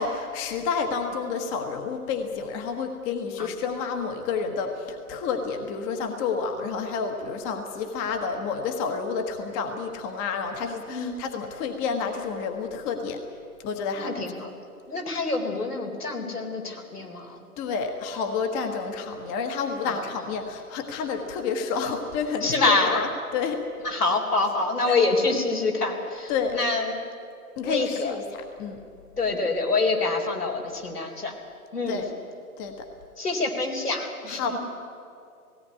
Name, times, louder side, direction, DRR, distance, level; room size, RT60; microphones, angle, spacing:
voice 1, 0.0-13.2 13.6-14.1 17.6-23.1 23.3-23.6 24.9-25.0 26.3-26.6 27.6-28.2 28.6-28.8 31.9-32.1 32.6-32.9 34.3-34.6, left 5 dB, 20° left, 5 dB, 1.4 m, -29 dB
voice 2, 13.9-14.5 14.9-17.4 19.9-20.0 22.4-23.0 23.8-27.0 27.6-28.2 29.2-31.3 31.7-32.1 33.2-34.6, left 3 dB, 85° left, 1 dB, 4.2 m, -26 dB
17.5 x 17.5 x 9.8 m, 2.4 s
figure-of-eight pair, 130°, 45 cm